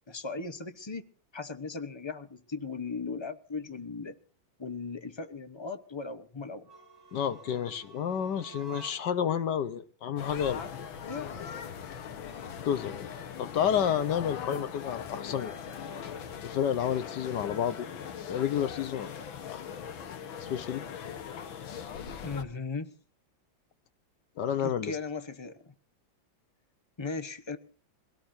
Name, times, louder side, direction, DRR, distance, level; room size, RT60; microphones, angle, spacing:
voice 1, 0.1-1.0 1.3-4.2 4.6-6.7 11.0-11.5 14.5-14.7 22.2-22.9 24.6-25.7 27.0-27.6, left 4 dB, 30° left, 0.5 m, -37 dB
sound 1, 6.6-9.3, right 4 dB, 10° right, 7.8 m, -50 dB
voice 2, 7.1-10.6 12.2-12.3 12.7-13.1 13.4-15.5 16.4-17.9 18.3-19.1 19.5-19.6 20.5-20.8 24.4-25.0, left 8 dB, 65° left, 1.5 m, -30 dB
sound 2, 10.2-22.4, left 7 dB, 85° left, 2.1 m, -40 dB
23.0 x 17.5 x 2.7 m
omnidirectional pair, 2.1 m